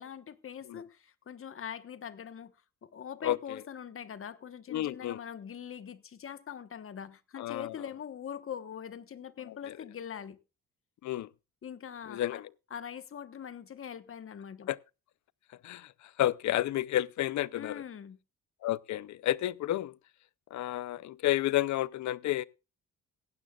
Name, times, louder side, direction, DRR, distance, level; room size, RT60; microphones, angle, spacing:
voice 1, 0.0-2.5 2.8-10.4 11.6-12.4 12.7-14.7 17.6-18.2, left 8 dB, 45° left, 1.2 m, -43 dB
voice 2, 4.7-5.2 7.4-7.7 11.0-11.3 12.1-12.4 14.7-14.8 15.6-15.9 16.2-17.8 18.6-19.9 20.5-22.4, left 14 dB, 70° left, 0.7 m, -30 dB
16.5 x 16.0 x 2.4 m
cardioid pair, 90°, 30 cm